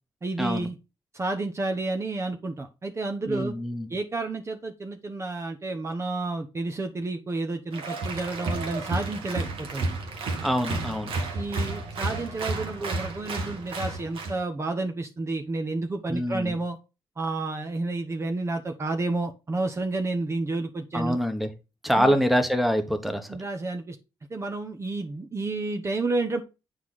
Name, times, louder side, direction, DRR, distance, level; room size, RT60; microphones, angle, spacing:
voice 1, 0.2-0.8 1.1-3.5 3.9-9.9 10.7-10.9 11.3-16.8 17.2-21.2 22.0-22.1 23.3-24.0 24.3-26.4, right 2 dB, 30° right, 4 dB, 0.9 m, -30 dB
voice 2, 3.3-3.9 10.4-11.1 16.1-16.6 20.9-21.5 21.8-23.4, equal, ahead, 7 dB, 1.3 m, -25 dB
Applause, 7.7-14.4, right 3 dB, 80° right, 1.8 m, -32 dB
8.2 x 4.8 x 4.0 m, 0.29 s
cardioid pair, 90°, 9 cm